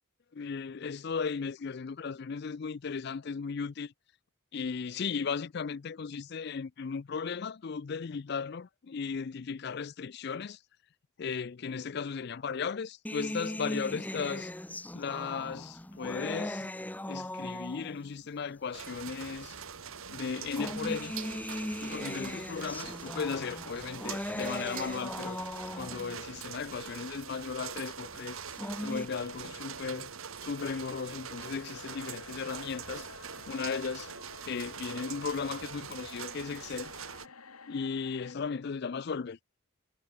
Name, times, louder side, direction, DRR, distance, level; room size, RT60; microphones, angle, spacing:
voice 1, 0.3-3.9 4.5-10.6 11.2-14.5 14.9-16.7 17.1-19.6 20.1-21.1 21.8-25.4 25.7-28.4 28.8-30.1 30.4-33.1 33.5-34.1 34.5-36.9 37.7-39.4, left 5 dB, 50° left, 0.4 m, -36 dB
sound 1, 13.0-18.1 19.1-19.2 20.2-26.1 28.3-29.0, left 1 dB, 5° left, 0.9 m, -38 dB
sound 2, 18.7-37.3, right 7 dB, 75° right, 1.8 m, -43 dB
sound 3, 31.3-38.3, left 5 dB, 90° left, 2.1 m, -52 dB
head